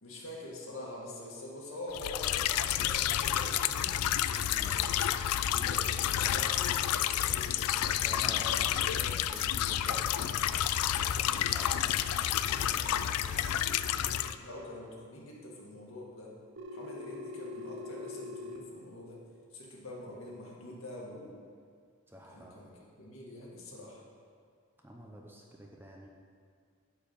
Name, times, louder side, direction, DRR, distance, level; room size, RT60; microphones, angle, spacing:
voice 1, 0.0-4.0 4.7-5.0 5.3-7.7 13.9-16.3 16.7-19.2 19.5-21.4 22.3-24.0, left 1 dB, 70° left, -3 dB, 1.8 m, -45 dB
sound 1, 1.9-14.3, left 11 dB, 90° left, 0.3 m, -30 dB
voice 2, 4.4-4.9 7.8-10.4 10.8-14.5 22.1-22.6 24.8-26.1, equal, 10° right, -1 dB, 0.7 m, -49 dB
Telephone, 16.6-18.6, left 3 dB, 60° right, 0.7 m, -42 dB
9.5 x 4.6 x 7.1 m, 2.1 s
head